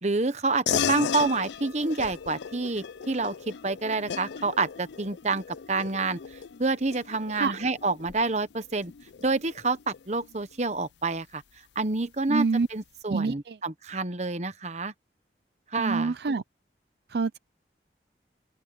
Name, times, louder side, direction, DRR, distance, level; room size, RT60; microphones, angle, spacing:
voice 1, 0.0-6.2 6.6-8.9 9.2-11.4 11.7-14.9 15.7-16.1, right 3 dB, 40° right, 1.1 m, -28 dB
sound 1, 0.7-10.5, left 7 dB, 85° left, 0.5 m, -35 dB
voice 2, 12.3-12.7 13.1-13.6 15.8-16.4 17.1-17.4, right 4 dB, 65° right, 0.5 m, -26 dB
open air
head